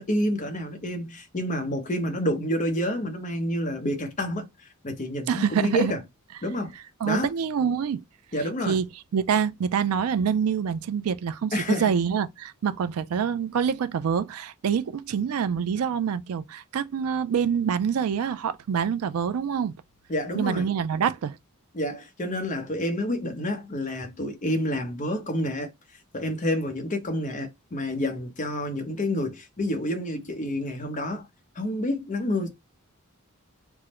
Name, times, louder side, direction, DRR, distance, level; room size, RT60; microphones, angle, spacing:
voice 1, 0.0-4.5 4.8-6.0 6.4-6.7 7.0-7.3 8.3-8.8 11.5-11.9 20.1-20.7 21.7-25.7 26.1-31.3 31.6-32.5, left 1 dB, 35° left, 0.7 m, -28 dB
voice 2, 5.3-5.9 7.0-8.0 8.7-8.9 9.1-19.7 20.3-21.4, right 7 dB, 85° right, 0.4 m, -26 dB
3.4 x 2.0 x 2.9 m
head